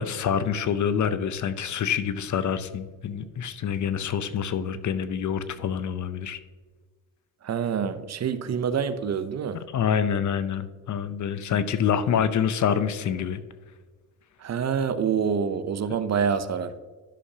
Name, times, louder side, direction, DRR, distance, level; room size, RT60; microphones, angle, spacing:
voice 1, 0.0-6.4 9.7-13.4, left 8 dB, 50° left, 13 dB, 0.7 m, -26 dB
voice 2, 7.4-9.6 14.4-16.8, right 7 dB, 45° right, 12 dB, 0.7 m, -26 dB
11.5 x 6.4 x 2.8 m, 1.4 s
cardioid pair, 75°, 37 cm